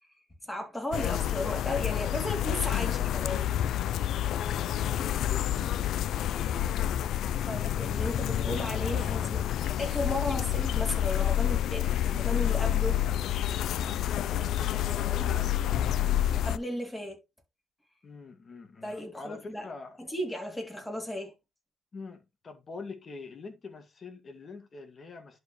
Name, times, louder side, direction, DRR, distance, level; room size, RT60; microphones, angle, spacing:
voice 1, 0.4-3.5 4.5-4.6 7.5-9.4 9.8-13.0 16.4-17.2 18.8-19.7 20.0-21.3, left 1 dB, 10° left, 3.9 m, -35 dB
sound 1, 0.9-16.6, left 11 dB, 75° left, 0.4 m, -29 dB
voice 2, 4.5-5.9 14.2-15.6 18.0-20.0 21.9-25.4, left 4 dB, 40° left, 2.1 m, -45 dB
11.0 x 4.7 x 3.2 m
cardioid pair, 90°, 0 cm